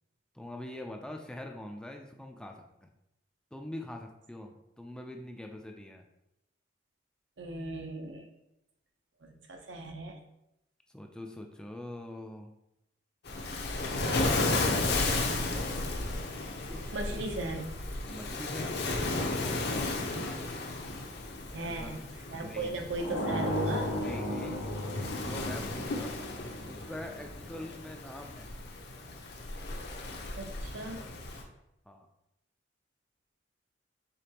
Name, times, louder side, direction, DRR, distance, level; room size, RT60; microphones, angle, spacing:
voice 1, 0.3-2.9 3.5-6.0 10.9-12.5 16.6-17.5 18.1-18.8 19.2-20.1 21.5-22.0 22.4-22.8 24.0-24.8 25.1-26.2 26.7-28.5 31.9-32.1, left 1 dB, 5° left, 3 dB, 0.3 m, -44 dB
voice 2, 7.4-8.2 9.2-10.2 16.9-17.6 20.2-20.4 21.5-22.0 22.3-23.9 30.4-31.0, right 2 dB, 75° right, 3 dB, 0.7 m, -37 dB
Waves surf, 13.2-31.4, left 2 dB, 60° left, 0.7 m, -34 dB
sound 1, 23.0-27.7, left 1 dB, 80° left, 1.0 m, -35 dB
5.1 x 3.7 x 2.9 m, 0.86 s
head